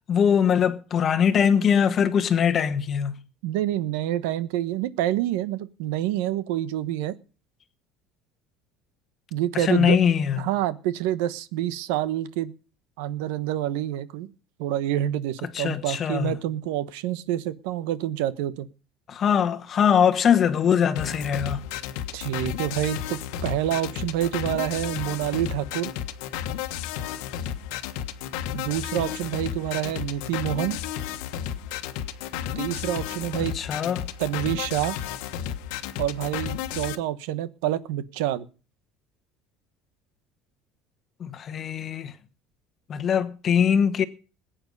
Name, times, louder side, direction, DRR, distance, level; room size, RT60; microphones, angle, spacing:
voice 1, 0.1-3.2 9.5-10.4 15.5-16.3 19.1-21.6 33.4-34.1 41.2-42.1 42.9-44.0, left 8 dB, 25° left, 1.1 m, -22 dB
voice 2, 3.4-7.1 9.3-10.0 10.4-12.5 13.0-14.3 14.6-18.7 22.1-25.9 28.5-30.8 32.5-33.5 34.2-35.0 36.0-38.5, right 12 dB, 90° right, 1.1 m, -27 dB
sound 1, 21.0-37.0, left 10 dB, 75° left, 1.3 m, -33 dB
21.0 x 9.0 x 5.4 m
cardioid pair, 180°, 0 cm